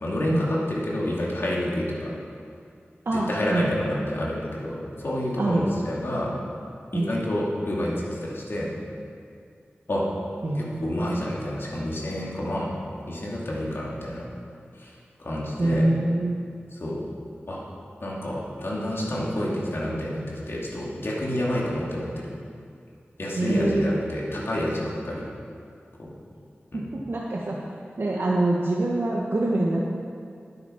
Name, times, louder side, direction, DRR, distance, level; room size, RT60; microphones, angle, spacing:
voice 1, 0.0-2.1 3.1-6.3 6.9-8.7 9.9-10.1 10.5-12.7 13.1-14.3 14.7-14.9 15.2-15.9 16.7-17.0 17.5-17.6 18.0-22.3 23.2-25.3 26.0-26.1 26.7-26.9, left 1 dB, 65° left, -5 dB, 2.5 m, -29 dB
voice 2, 3.0-3.7 5.4-5.7 6.9-7.1 10.4-11.3 15.6-16.4 23.4-23.9 26.7-27.6 28.0-29.8, right 2 dB, 65° right, -4 dB, 1.1 m, -25 dB
9.8 x 8.2 x 5.7 m, 2.3 s
cardioid pair, 40°, 4 cm